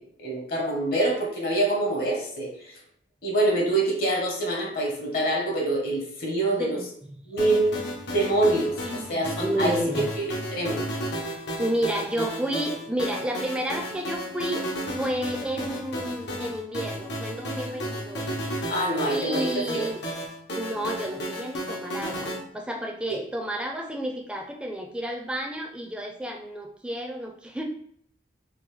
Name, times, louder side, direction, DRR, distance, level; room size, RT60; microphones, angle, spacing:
voice 1, 0.0-2.8 3.2-6.8 7.3-7.8 8.1-9.8 10.2-10.8 18.7-19.5 19.7-19.9 23.1-23.2, right 1 dB, 55° left, -1 dB, 1.0 m, -25 dB
voice 2, 6.5-7.3 8.8-10.1 11.6-18.7 19.1-20.0 20.5-27.6, right 1 dB, 5° right, 2 dB, 0.4 m, -31 dB
sound 1, 7.4-22.4, equal, 75° left, 0.9 m, -33 dB
3.8 x 2.6 x 3.1 m, 0.63 s
head